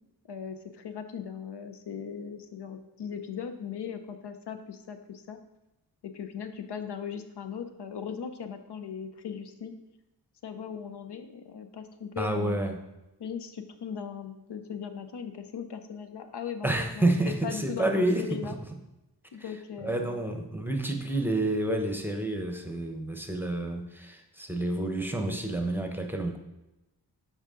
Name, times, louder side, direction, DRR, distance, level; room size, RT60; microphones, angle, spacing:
voice 1, 0.3-5.4 6.0-9.7 10.4-12.6 13.2-18.6 19.3-20.3, left 7 dB, 70° left, 8 dB, 0.7 m, -38 dB
voice 2, 12.2-12.7 16.6-18.2 19.8-26.4, right 1 dB, 5° right, 4 dB, 0.8 m, -29 dB
8.1 x 4.9 x 3.7 m, 0.97 s
wide cardioid pair, 75°, 42 cm